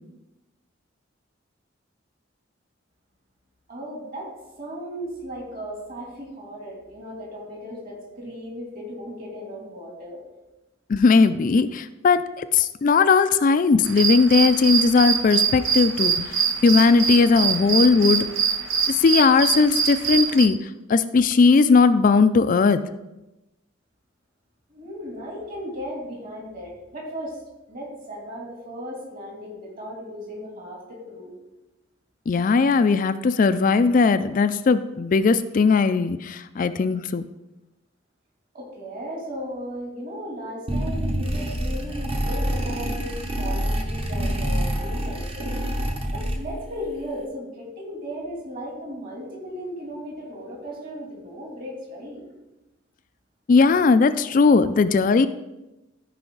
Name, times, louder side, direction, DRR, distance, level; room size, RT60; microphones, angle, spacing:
voice 1, 3.7-4.3 4.6-10.2 24.7-27.4 27.7-31.3 38.5-45.5 46.1-52.2, equal, 45° right, -2 dB, 2.9 m, -36 dB
voice 2, 10.9-18.2 18.9-20.6 20.9-22.8 32.3-37.2 53.5-55.3, left 4 dB, 45° left, 11 dB, 0.3 m, -18 dB
sound 1, 13.8-20.5, right 6 dB, 90° right, 0.9 m, -24 dB
sound 2, 40.7-46.7, equal, 30° right, 0.9 m, -27 dB
14.0 x 4.9 x 3.9 m, 0.99 s
head